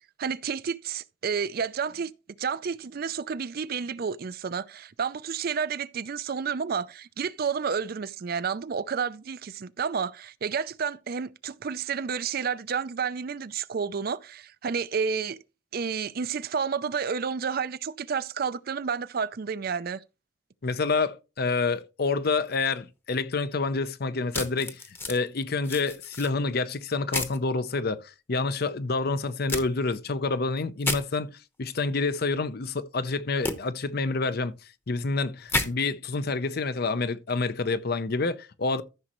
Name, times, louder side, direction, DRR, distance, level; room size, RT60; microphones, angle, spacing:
voice 1, 0.2-2.1 2.4-15.4 15.7-20.0, right 6 dB, 50° right, 0.5 m, -30 dB
voice 2, 20.6-24.8 25.1-34.5 34.9-38.8, left 3 dB, 55° left, 0.7 m, -28 dB
sound 1, 24.3-25.2 25.6-26.3 27.1-27.4 29.5-29.6 30.8-31.0 33.4-33.5 35.5-35.7, left 2 dB, 10° left, 0.9 m, -30 dB
14.0 x 6.3 x 3.0 m
head